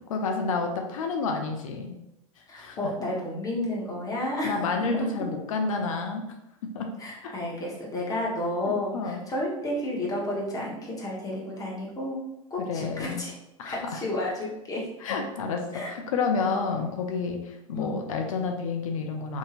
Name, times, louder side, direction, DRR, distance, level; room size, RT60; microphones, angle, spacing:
voice 1, 0.1-2.0 2.4-2.8 4.2-6.2 6.7-6.9 7.2-7.3 8.6-9.2 12.6-13.2 13.6-14.0 15.0-19.4, left 4 dB, 75° left, 3 dB, 0.4 m, -30 dB
voice 2, 2.5-4.6 4.9-5.1 7.0-12.2 12.5-13.3 13.6-14.9 15.7-15.9 17.7-18.2, left 1 dB, 20° left, -3 dB, 0.9 m, -31 dB
2.8 x 2.7 x 2.4 m, 0.88 s
hypercardioid pair, 90°, 17 cm